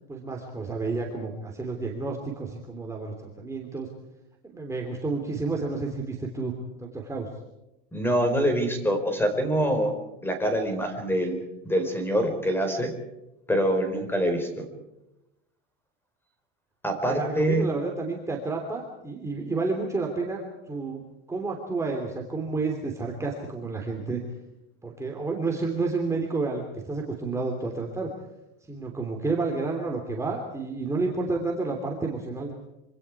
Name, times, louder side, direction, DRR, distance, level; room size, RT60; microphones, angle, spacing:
voice 1, 0.1-3.9 4.4-6.5 6.8-7.3 17.1-21.0 21.3-24.2 24.8-28.1 28.7-32.5, right 3 dB, 10° right, 0 dB, 3.0 m, -30 dB
voice 2, 7.9-9.9 10.2-12.9 13.5-14.7 16.8-17.7, equal, 5° left, 7 dB, 4.5 m, -25 dB
26.5 x 25.5 x 4.8 m, 0.92 s
supercardioid pair, 145°, 30 cm